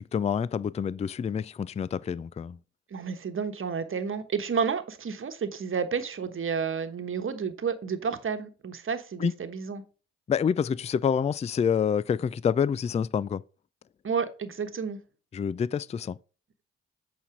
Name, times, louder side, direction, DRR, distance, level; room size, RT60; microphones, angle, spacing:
voice 1, 0.0-2.6 9.2-9.3 10.3-13.4 15.3-16.2, left 7 dB, 25° left, 0.4 m, -27 dB
voice 2, 2.9-9.8 14.0-15.0, right 6 dB, 45° right, 1.2 m, -31 dB
8.3 x 4.3 x 4.9 m
hypercardioid pair, 45°, 29 cm